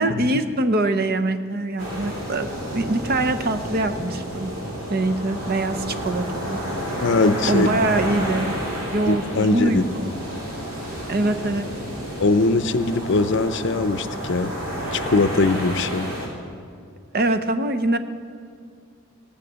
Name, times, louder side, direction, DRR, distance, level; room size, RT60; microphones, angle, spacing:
voice 1, 0.0-4.5 4.9-6.6 7.5-8.5 8.9-10.1 11.1-11.7 17.1-18.0, right 2 dB, 45° right, 10 dB, 0.7 m, -23 dB
sound 1, 1.8-16.3, equal, 85° right, 3.4 m, -30 dB
voice 2, 7.0-7.7 9.1-9.9 12.2-14.5 14.9-16.1, left 3 dB, 60° left, 11 dB, 0.6 m, -21 dB
16.0 x 9.7 x 7.4 m, 2.2 s
head